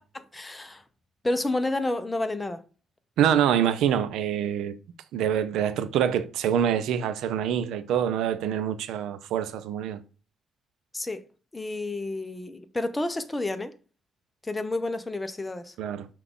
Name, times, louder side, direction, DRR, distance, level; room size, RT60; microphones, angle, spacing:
voice 1, 0.1-0.8 1.2-2.6 10.9-11.3 11.5-13.7 14.4-15.7, left 2 dB, 15° left, 0.6 m, -30 dB
voice 2, 3.2-4.7 5.1-10.0 15.8-16.1, right 9 dB, 85° right, 0.5 m, -25 dB
5.7 x 2.4 x 3.6 m
cardioid pair, 90°, 0 cm